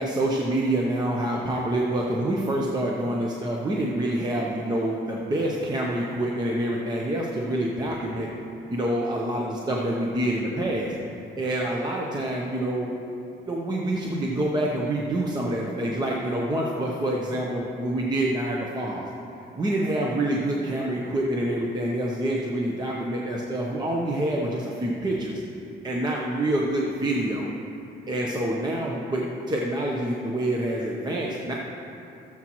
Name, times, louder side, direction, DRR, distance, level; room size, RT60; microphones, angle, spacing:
voice 1, 0.0-8.3 8.7-10.9 11.4-12.9 13.5-19.1 19.5-25.4 25.8-27.5 28.1-31.5, right 1 dB, 20° right, -2 dB, 0.8 m, -27 dB
16.5 x 7.4 x 3.0 m, 2.7 s
cardioid pair, 150°, 19 cm